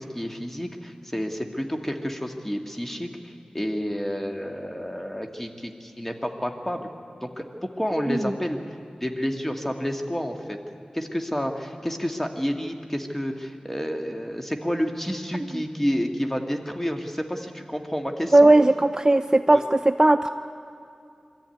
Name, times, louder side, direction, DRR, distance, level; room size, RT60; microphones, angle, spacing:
voice 1, 0.0-6.9 7.2-8.6 9.0-10.6 10.9-18.5 19.5-19.6, equal, 10° left, 3 dB, 2.1 m, -30 dB
voice 2, 18.3-20.3, right 2 dB, 25° right, 9 dB, 0.5 m, -17 dB
23.0 x 13.5 x 9.3 m, 2.4 s
cardioid pair, 45°, 2 cm